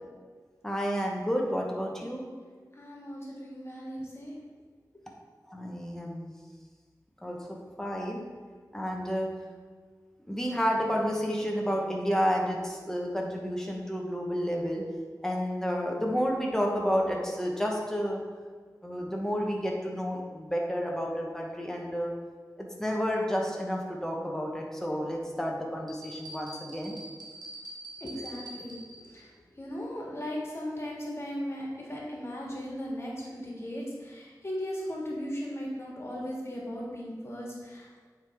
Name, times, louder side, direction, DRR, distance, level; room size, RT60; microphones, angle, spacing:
voice 1, 0.6-2.3 5.5-6.3 7.2-7.4 7.8-8.2 8.7-9.3 10.3-14.8 15.2-18.2 18.8-22.1 22.6-27.0, equal, 5° left, -1 dB, 1.2 m, -30 dB
voice 2, 2.8-4.3 28.0-28.8 29.1-29.2 29.6-38.1, equal, 40° left, -3 dB, 1.8 m, -37 dB
sound 1, 25.9-29.2, right 1 dB, 85° right, 1.2 m, -44 dB
8.9 x 3.7 x 3.6 m, 1.5 s
wide cardioid pair, 50°, 7 cm